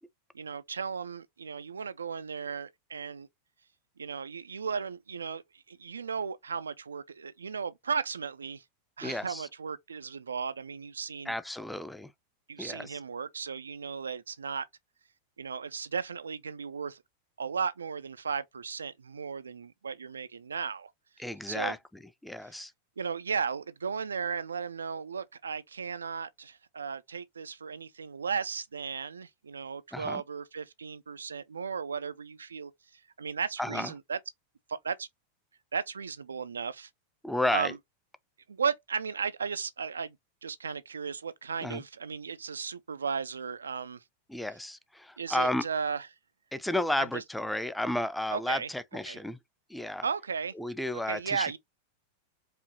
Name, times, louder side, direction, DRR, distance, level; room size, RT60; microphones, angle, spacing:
voice 1, 0.3-3.3 4.0-8.6 9.0-11.3 12.5-14.7 15.4-17.0 17.4-20.9 21.5-21.7 23.0-34.2 34.7-35.1 35.7-36.9 37.5-37.8 38.5-40.2 40.4-44.0 45.2-46.1 47.0-47.2 48.3-48.7 49.1-49.2 50.0-50.5 51.1-51.6, right 6 dB, 70° right, 0.3 m, -35 dB
voice 2, 9.0-9.5 11.3-12.1 12.6-13.0 21.2-21.8 22.2-22.7 29.9-30.2 33.6-33.9 37.2-37.7 41.6-41.8 44.3-45.6 46.5-49.4 49.7-50.1 50.6-51.6, left 1 dB, 5° left, 0.4 m, -32 dB
4.8 x 2.7 x 2.8 m
figure-of-eight pair, 90°, 0 cm